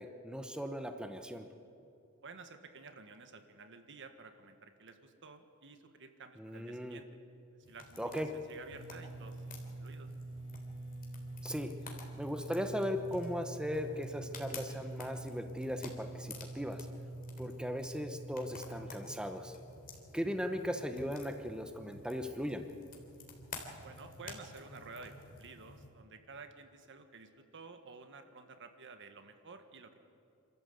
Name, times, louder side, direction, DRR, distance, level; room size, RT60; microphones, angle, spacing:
voice 1, 0.0-1.5 6.4-7.0 8.0-8.3 11.4-16.9 17.4-19.6 20.1-22.6, equal, 5° right, 6 dB, 1.0 m, -38 dB
voice 2, 2.2-7.1 7.7-10.1 23.8-30.0, right 4 dB, 55° right, 8 dB, 1.6 m, -52 dB
sound 1, 7.6-25.9, left 3 dB, 40° left, 3.1 m, -52 dB
sound 2, 8.7-18.9, right 2 dB, 85° right, 5.3 m, -46 dB
27.5 x 13.5 x 8.1 m, 2.7 s
head